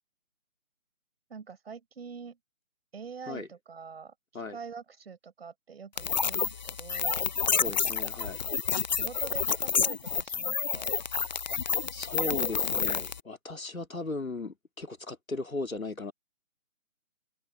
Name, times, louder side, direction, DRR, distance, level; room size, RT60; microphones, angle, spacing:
voice 1, 1.3-2.4 2.9-7.2 9.0-10.9, right 6 dB, 50° right, 6.9 m, -45 dB
sound 1, 6.0-13.2, left 6 dB, 35° left, 0.8 m, -29 dB
voice 2, 7.5-8.4 11.9-16.1, left 2 dB, 85° left, 2.9 m, -37 dB
figure-of-eight pair, 150°, 40 cm